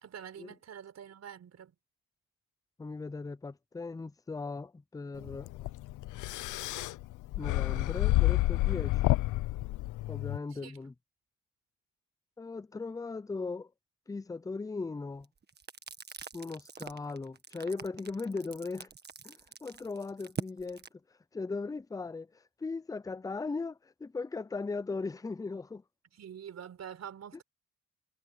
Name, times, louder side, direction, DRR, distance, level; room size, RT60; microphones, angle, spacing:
voice 1, 0.0-1.7 10.5-10.8 26.1-27.4, right 9 dB, 60° right, 4.6 m, -46 dB
voice 2, 2.8-5.5 7.4-9.0 10.1-10.9 12.4-13.7 14.1-15.3 16.3-18.9 19.2-20.8 21.3-25.8, left 3 dB, 10° left, 0.6 m, -38 dB
sound 1, 5.2-10.4, left 18 dB, 90° left, 0.8 m, -29 dB
sound 2, 15.2-20.9, right 5 dB, 35° right, 1.6 m, -43 dB
cardioid pair, 90°, 30 cm